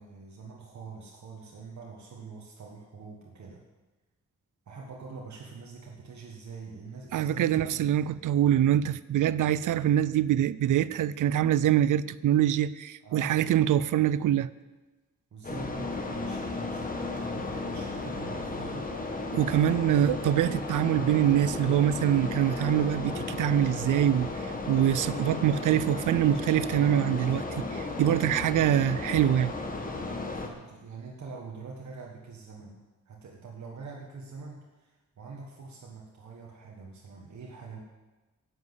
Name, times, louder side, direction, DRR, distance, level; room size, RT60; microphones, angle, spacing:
voice 1, 0.0-3.6 4.7-7.9 13.0-13.5 15.3-18.9 28.3-28.5 30.3-37.8, right 4 dB, 65° right, 1.6 m, -44 dB
voice 2, 7.1-14.5 19.3-29.5, right 11 dB, 85° right, 0.5 m, -24 dB
sound 1, 15.4-30.5, left 3 dB, 25° left, 1.4 m, -34 dB
10.5 x 8.1 x 8.1 m
wide cardioid pair, 135°, 30 cm